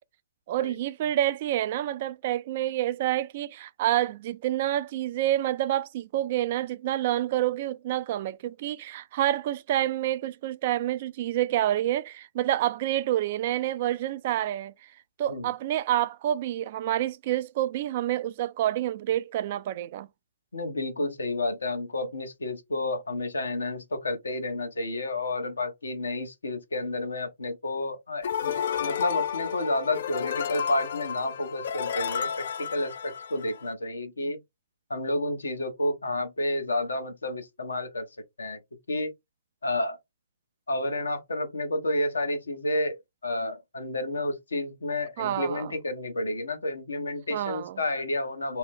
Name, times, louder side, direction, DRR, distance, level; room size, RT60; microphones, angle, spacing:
voice 1, 0.5-14.7 15.2-20.1 45.2-45.7 47.3-47.8, right 13 dB, 45° right, 0.3 m, -28 dB
voice 2, 20.5-34.4 34.9-38.0 38.4-38.6 38.9-39.1 39.6-40.0 40.7-43.0 43.2-48.6, left 1 dB, 80° left, 0.9 m, -30 dB
sound 1, 28.2-33.7, left 8 dB, 55° left, 0.3 m, -31 dB
2.8 x 2.1 x 3.3 m
figure-of-eight pair, 125°, 0 cm